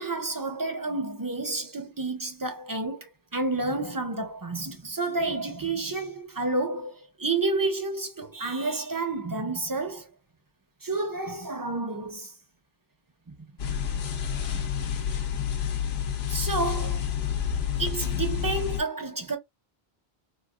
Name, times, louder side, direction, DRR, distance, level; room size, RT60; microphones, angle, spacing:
voice 1, 0.0-10.1 10.8-12.3 13.3-13.4 14.5-14.6 16.3-17.0 17.8-19.4, right 3 dB, 30° right, 0.4 m, -30 dB
sound 1, 13.6-18.8, left 8 dB, 85° left, 0.9 m, -29 dB
3.9 x 2.3 x 2.3 m
omnidirectional pair, 1.0 m